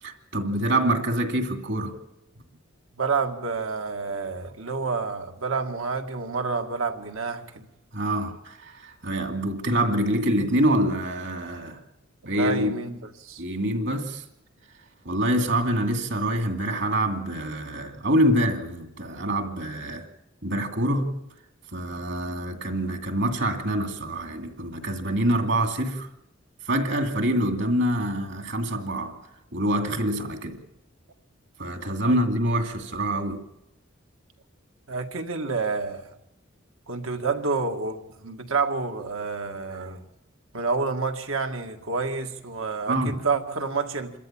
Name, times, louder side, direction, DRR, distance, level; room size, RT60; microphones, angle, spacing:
voice 1, 0.0-2.0 7.9-11.8 12.2-12.7 13.4-14.2 15.0-20.1 20.4-21.2 21.7-26.1 26.6-29.1 29.5-30.6 31.6-33.4 42.9-43.2, right 1 dB, 60° right, 2.4 m, -25 dB
voice 2, 3.0-7.7 12.3-13.4 32.0-32.2 34.9-36.1 36.9-40.0 40.5-44.1, right 4 dB, 80° right, 2.0 m, -29 dB
27.0 x 13.5 x 8.9 m
head